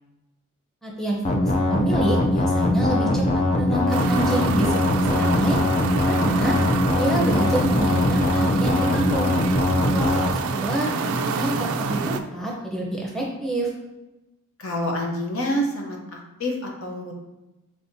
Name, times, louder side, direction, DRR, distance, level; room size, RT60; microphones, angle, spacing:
voice 1, 0.8-5.6 6.0-6.6 6.9-9.3 9.9-13.7, right 1 dB, ahead, -3 dB, 0.8 m, -27 dB
sound 1, 1.2-10.3, left 1 dB, 30° left, 0.4 m, -21 dB
sound 2, 3.9-12.2, right 4 dB, 80° right, 0.4 m, -28 dB
voice 2, 14.6-17.1, equal, 70° left, 0 dB, 0.9 m, -29 dB
5.4 x 3.3 x 2.7 m, 1.0 s
head